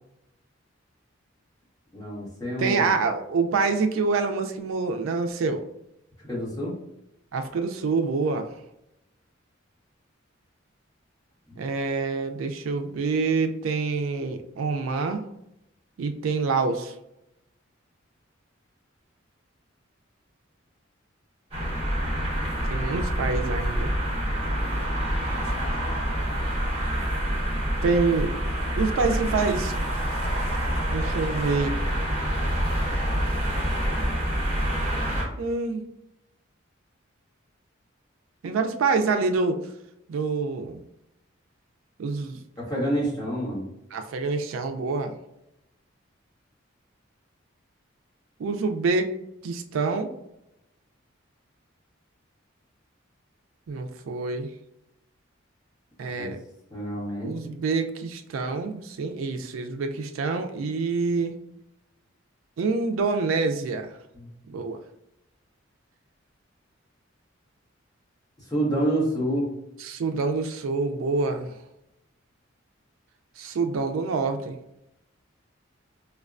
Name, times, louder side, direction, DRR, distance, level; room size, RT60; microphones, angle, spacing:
voice 1, 1.9-2.9 6.2-6.7 11.5-11.6 42.6-43.7 56.2-56.3 56.7-57.5 64.1-64.3 68.4-69.5, right 1 dB, 20° left, -6 dB, 1.3 m, -28 dB
voice 2, 2.6-5.6 7.3-8.6 11.6-15.2 16.0-16.9 22.7-23.9 27.8-28.3 28.8-29.7 30.9-31.7 35.4-35.8 38.4-39.6 40.1-40.8 42.0-42.4 43.9-45.2 48.4-49.2 49.4-50.1 53.7-54.5 56.0-56.4 57.2-61.4 62.6-63.9 64.5-64.8 69.8-71.5 73.4-74.6, right 4 dB, 85° right, 6 dB, 0.4 m, -26 dB
sound 1, 21.5-35.2, equal, 30° right, 1.0 m, -27 dB
4.5 x 2.2 x 2.4 m, 0.85 s
head